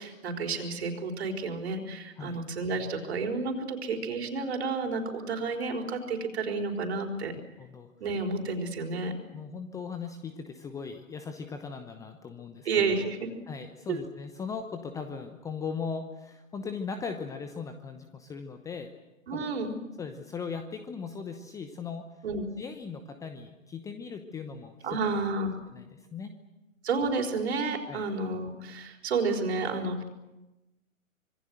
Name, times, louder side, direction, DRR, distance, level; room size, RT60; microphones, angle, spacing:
voice 1, 0.0-7.3 8.0-9.1 12.6-13.3 13.9-14.0 19.3-19.8 22.2-22.5 24.8-25.6 26.8-30.0, right 4 dB, 50° right, 3 dB, 4.5 m, -31 dB
voice 2, 7.6-7.9 9.3-12.7 13.0-13.1 13.5-18.9 19.3-19.5 20.0-22.0 22.6-25.0 25.7-26.3 27.9-28.1, left 5 dB, 10° left, 7 dB, 0.9 m, -38 dB
26.0 x 22.5 x 7.9 m, 1.0 s
figure-of-eight pair, 120°, 41 cm